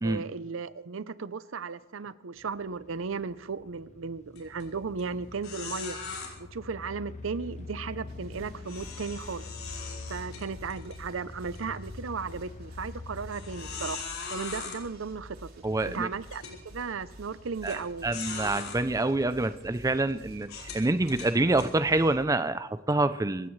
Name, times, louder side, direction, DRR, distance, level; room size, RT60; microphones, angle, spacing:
voice 1, 0.0-6.0 6.4-9.4 10.1-14.0 14.3-15.5 15.8-18.2, right 5 dB, 70° right, 0.6 m, -35 dB
sound 1, 2.4-14.0, left 3 dB, 35° left, 0.9 m, -45 dB
sound 2, 4.4-4.6 5.0-5.1 5.4-6.3 8.6-11.0 11.4-11.6 12.2-12.3 13.3-14.8 15.6-15.7 16.3-16.6 17.6-17.8 18.1-18.8 19.5-19.6 20.4-21.7, left 5 dB, 85° left, 4.8 m, -40 dB
sound 3, 8.1-22.1, right 1 dB, 55° right, 6.9 m, -50 dB
voice 2, 15.6-16.1 17.6-23.5, right 2 dB, 15° right, 0.5 m, -27 dB
26.5 x 16.0 x 3.2 m
head